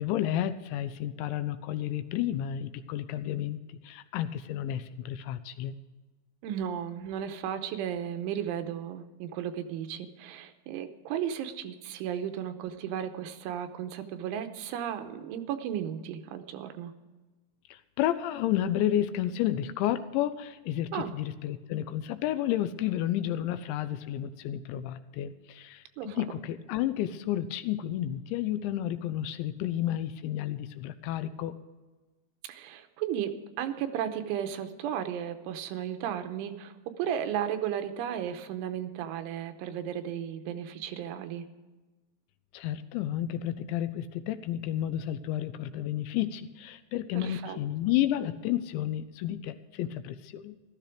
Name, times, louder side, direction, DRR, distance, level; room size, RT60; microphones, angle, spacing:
voice 1, 0.0-5.7 17.7-31.6 42.5-50.6, left 12 dB, 80° left, 11 dB, 2.8 m, -31 dB
voice 2, 6.4-16.9 20.9-21.1 26.0-26.2 32.4-41.5 47.1-47.6, right 9 dB, 85° right, 8 dB, 3.3 m, -34 dB
14.5 x 13.5 x 4.9 m, 1.2 s
omnidirectional pair, 5.5 m